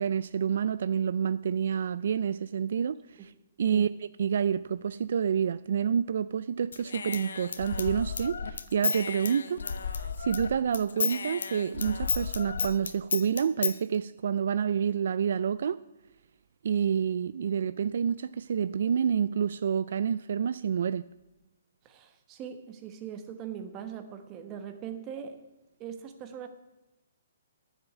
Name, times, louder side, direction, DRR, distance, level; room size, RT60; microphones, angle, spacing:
voice 1, 0.0-3.3 3.6-3.9 4.2-15.8 16.6-21.1, right 7 dB, 60° right, 0.3 m, -28 dB
Human voice / Scissors, 6.7-10.5 10.7-13.8, left 5 dB, 85° left, 1.0 m, -33 dB
voice 2, 21.8-25.4 25.8-26.5, right 8 dB, 20° right, 1.1 m, -41 dB
10.5 x 7.3 x 9.2 m
hypercardioid pair, 165°, 0 cm